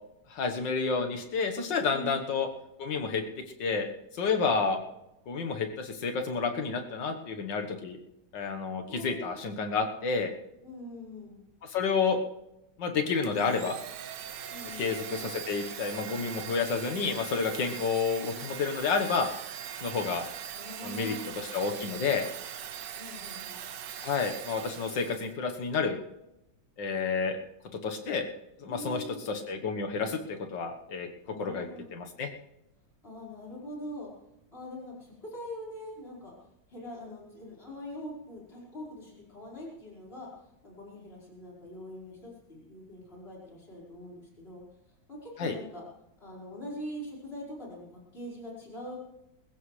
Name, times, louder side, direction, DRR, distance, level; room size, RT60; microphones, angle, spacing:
voice 1, 0.3-2.5 2.8-3.2 3.6-3.9 4.1-4.8 5.3-8.0 8.3-10.3 11.6-12.2 12.8-13.8 14.8-19.3 19.8-20.2 20.8-22.3 24.0-26.0 26.8-27.4 27.8-28.3 28.6-31.1 31.4-32.3 45.4-45.5, left 5 dB, 75° left, 5 dB, 2.0 m, -30 dB
voice 2, 8.9-9.4 10.6-11.4 14.5-15.0 20.5-21.3 23.0-23.6 28.6-29.2 31.3-31.9 33.0-34.1 34.5-36.3 36.7-40.3 40.6-44.6 45.1-45.8 46.2-49.0, left 1 dB, 30° left, -5 dB, 5.2 m, -43 dB
Domestic sounds home sounds, 13.2-25.3, right 9 dB, 70° right, 1.5 m, -41 dB
20.5 x 15.5 x 3.3 m, 0.90 s
omnidirectional pair, 2.0 m